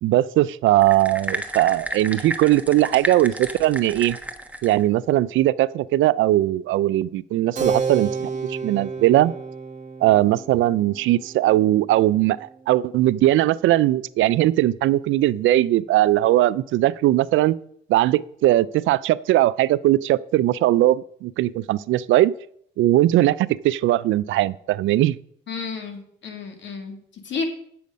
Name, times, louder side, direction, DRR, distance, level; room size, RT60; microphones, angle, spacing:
voice 1, 0.0-4.2 4.6-9.3 10.0-12.4 12.7-17.5 17.9-22.3 22.8-25.2, right 15 dB, 80° right, 19 dB, 0.4 m, -19 dB
sound 1, 0.8-4.8, right 1 dB, 5° right, 1.1 m, -32 dB
Keyboard (musical), 7.6-13.7, right 5 dB, 40° right, 1.6 m, -32 dB
voice 2, 25.5-27.4, left 5 dB, 65° left, 4 dB, 2.1 m, -32 dB
9.2 x 7.0 x 5.2 m, 0.67 s
cardioid pair, 90°, 20 cm